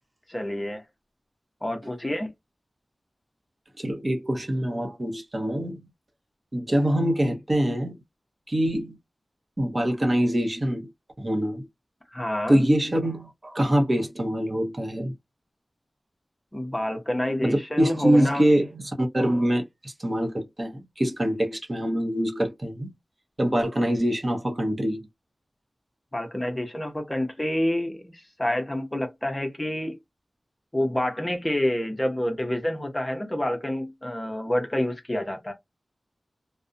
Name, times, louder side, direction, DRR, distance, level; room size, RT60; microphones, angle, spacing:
voice 1, 0.3-0.8 1.6-2.3 12.1-12.6 16.5-18.5 26.1-30.0 30.7-35.5, left 1 dB, 20° left, 0.6 m, -28 dB
voice 2, 3.8-5.8 6.5-8.0 8.5-9.0 9.6-10.9 11.2-11.6 12.5-15.1 17.4-22.9 23.4-25.1, equal, 35° right, 0.7 m, -24 dB
2.4 x 2.0 x 2.5 m
wide cardioid pair, 85°, 0 cm